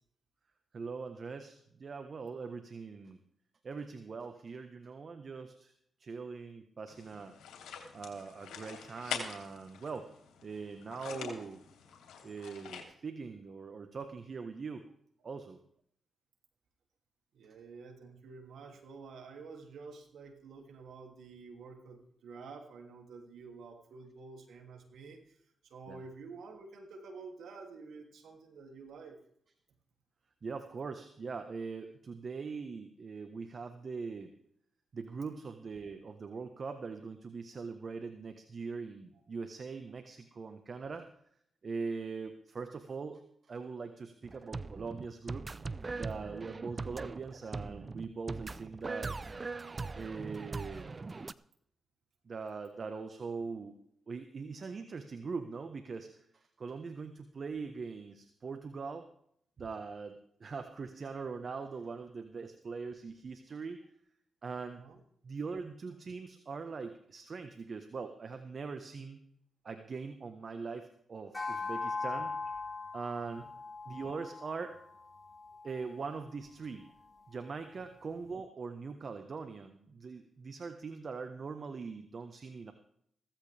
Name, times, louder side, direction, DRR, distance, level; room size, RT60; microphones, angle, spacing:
voice 1, 0.7-3.2 3.6-5.7 6.0-7.3 7.9-10.1 10.4-11.6 12.2-14.9 15.2-15.6 25.9-26.0 30.4-34.3 34.9-41.1 41.6-43.2 43.5-45.5 45.9-49.2 49.9-50.9 52.2-53.8 54.1-59.1 59.6-63.8 64.4-64.8 65.2-69.2 69.6-72.3 72.9-73.5 73.9-74.8 75.6-76.9 77.3-82.7, right 4 dB, 55° right, 8 dB, 1.4 m, -42 dB
sound 1, 6.9-12.8, left 7 dB, 85° left, 3.1 m, -45 dB
voice 2, 17.3-25.2 25.7-29.1 40.8-40.9 59.6-59.7 64.6-65.0 73.3-73.5, right 4 dB, 80° right, 3 dB, 2.9 m, -50 dB
sound 2, 44.2-51.3, right 3 dB, 40° right, 0.7 m, -41 dB
sound 3, 71.3-75.9, left 4 dB, 25° left, 5.1 m, -40 dB
16.0 x 15.0 x 3.5 m, 0.68 s
supercardioid pair, 50°, 0 cm